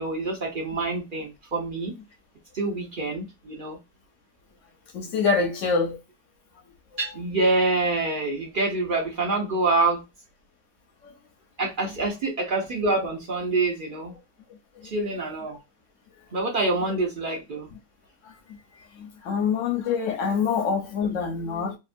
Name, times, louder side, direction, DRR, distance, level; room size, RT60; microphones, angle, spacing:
voice 1, 0.0-1.9 2.5-3.8 7.0-10.0 11.6-14.1 14.8-15.6 16.3-17.7, right 2 dB, 70° right, 0.4 m, -26 dB
voice 2, 4.9-6.0 11.0-11.1 14.8-14.9 18.2-18.3 19.0-21.8, left 5 dB, 60° left, 0.9 m, -25 dB
2.8 x 2.4 x 2.4 m
omnidirectional pair, 1.8 m